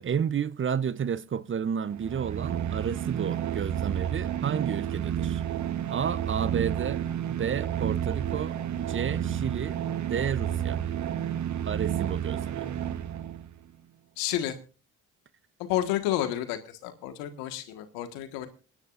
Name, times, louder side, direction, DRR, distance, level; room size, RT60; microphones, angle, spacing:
voice 1, 0.0-5.4 5.9-9.8 10.1-10.8 11.6-12.8, right 7 dB, 35° right, 0.7 m, -31 dB
sound 1, 1.9-13.6, right 10 dB, 55° right, 1.1 m, -31 dB
voice 2, 14.2-14.6 15.6-18.5, left 13 dB, 85° left, 1.6 m, -30 dB
28.0 x 10.5 x 2.5 m
hypercardioid pair, 55°, 34 cm